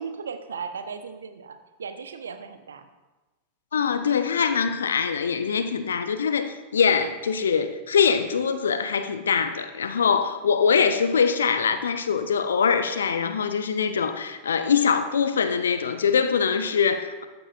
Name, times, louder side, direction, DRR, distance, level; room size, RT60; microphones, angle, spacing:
voice 1, 0.0-2.9, right 5 dB, 70° right, 9 dB, 0.8 m, -36 dB
voice 2, 3.7-17.3, left 6 dB, 70° left, 10 dB, 0.8 m, -23 dB
14.5 x 11.5 x 2.5 m, 1.1 s
figure-of-eight pair, 90°, 0 cm